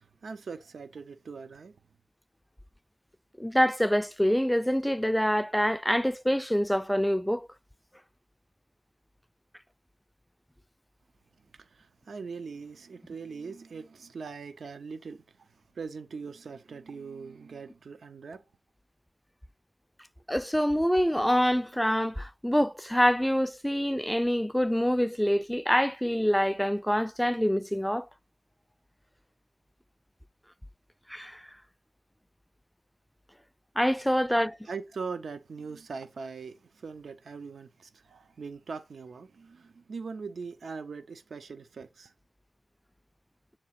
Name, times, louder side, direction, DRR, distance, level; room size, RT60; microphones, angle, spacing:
voice 1, 0.0-1.7 11.5-18.4 34.7-42.1, right 5 dB, 80° right, 0.6 m, -41 dB
voice 2, 3.4-7.5 20.3-28.1 31.1-31.4 33.8-34.6, equal, 5° left, 0.3 m, -26 dB
7.5 x 3.0 x 5.8 m
cardioid pair, 45°, 0 cm